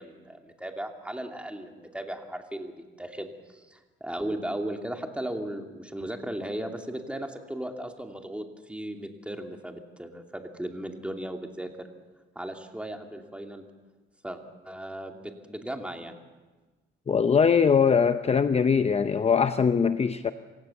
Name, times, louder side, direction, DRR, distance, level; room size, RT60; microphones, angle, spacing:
voice 1, 0.0-11.9 12.3-13.6 14.2-16.2, right 1 dB, 5° right, 3 dB, 2.7 m, -36 dB
voice 2, 17.1-20.3, left 6 dB, 30° left, 10 dB, 0.8 m, -22 dB
26.5 x 16.5 x 7.1 m, 1.2 s
cardioid pair, 90°, 20 cm